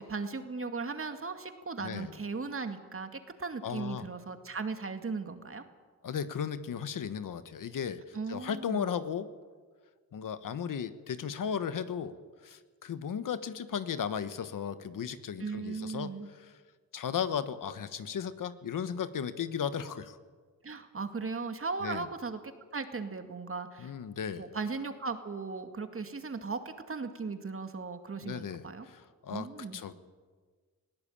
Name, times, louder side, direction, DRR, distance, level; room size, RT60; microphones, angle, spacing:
voice 1, 0.0-3.1 3.4-5.6 8.1-8.9 15.4-16.3 20.6-22.4 22.7-23.9 24.4-28.9 29.3-29.8, right 4 dB, 40° right, 7 dB, 2.2 m, -37 dB
voice 2, 1.8-2.1 3.6-4.1 6.0-9.3 10.1-12.2 12.4-16.5 16.9-20.2 21.8-22.1 23.8-24.5 28.2-29.5 29.7-29.9, left 7 dB, 75° left, 12 dB, 1.3 m, -35 dB
20.0 x 17.5 x 8.8 m, 1.5 s
cardioid pair, 75°, 33 cm